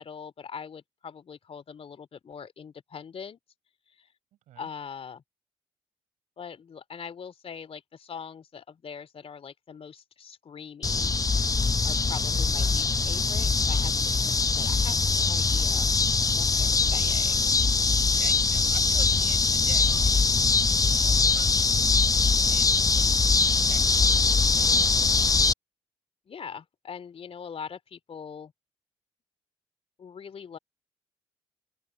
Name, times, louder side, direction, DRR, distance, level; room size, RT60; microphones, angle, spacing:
voice 1, 0.0-3.4 3.9-4.1 4.6-5.2 6.4-15.9 16.3-17.6 26.3-28.5 30.0-30.6, left 6 dB, 50° left, 2.8 m, -42 dB
sound 1, 10.8-25.5, left 4 dB, 30° left, 1.0 m, -23 dB
voice 2, 17.9-23.0 23.6-24.8, right 14 dB, 70° right, 6.5 m, -48 dB
open air
hypercardioid pair, 40°, 13 cm